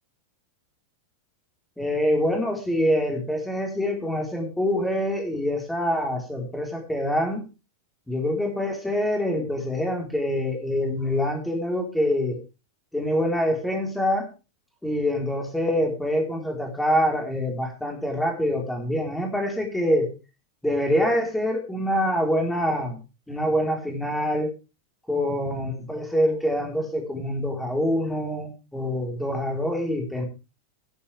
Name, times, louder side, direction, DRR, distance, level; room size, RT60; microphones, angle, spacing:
voice 1, 1.8-7.5 8.1-12.4 12.9-14.3 14.8-20.1 20.6-23.0 23.3-24.5 25.1-30.3, equal, 5° left, 2 dB, 4.2 m, -25 dB
18.0 x 8.6 x 3.5 m, 0.30 s
figure-of-eight pair, 90°, 0 cm